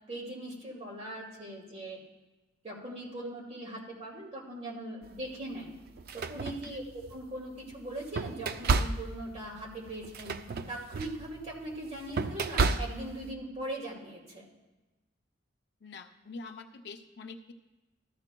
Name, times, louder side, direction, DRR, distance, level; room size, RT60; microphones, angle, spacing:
voice 1, 0.1-2.0 2.6-5.7 6.1-10.3 10.7-14.4, right 1 dB, 35° right, -3 dB, 2.2 m, -40 dB
sound 1, 5.0-5.2 5.9-7.2 7.7-13.3, right 4 dB, 55° right, 0.4 m, -32 dB
voice 2, 15.8-17.5, left 3 dB, 60° left, 6 dB, 0.5 m, -45 dB
14.0 x 10.5 x 2.2 m, 1.1 s
head